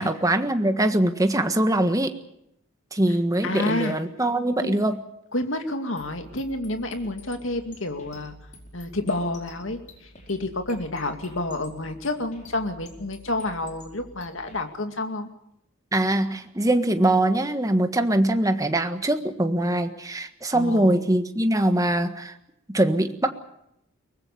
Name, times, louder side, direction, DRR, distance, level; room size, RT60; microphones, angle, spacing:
voice 1, 0.0-2.2 2.9-5.0 15.9-22.3 22.7-23.3, right 1 dB, 15° right, 7 dB, 1.5 m, -22 dB
voice 2, 3.4-4.0 4.6-4.8 5.3-8.3 8.7-9.8 10.3-15.3 20.5-21.0, left 2 dB, 70° left, 6 dB, 2.3 m, -29 dB
sound 1, 6.0-14.6, left 1 dB, 40° left, 4.8 m, -48 dB
23.0 x 20.0 x 7.1 m, 0.80 s
head